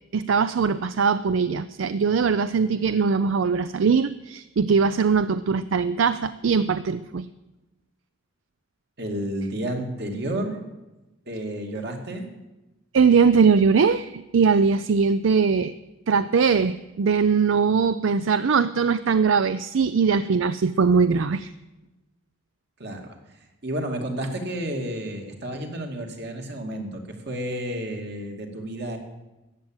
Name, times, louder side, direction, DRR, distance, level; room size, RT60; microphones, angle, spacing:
voice 1, 0.1-7.3 12.9-15.7 16.1-21.5, right 5 dB, 75° right, 14 dB, 0.4 m, -21 dB
voice 2, 9.0-10.7 11.3-12.3 22.8-23.2 23.6-29.0, right 1 dB, 55° right, 3 dB, 2.3 m, -31 dB
13.5 x 8.8 x 8.9 m, 1.0 s
head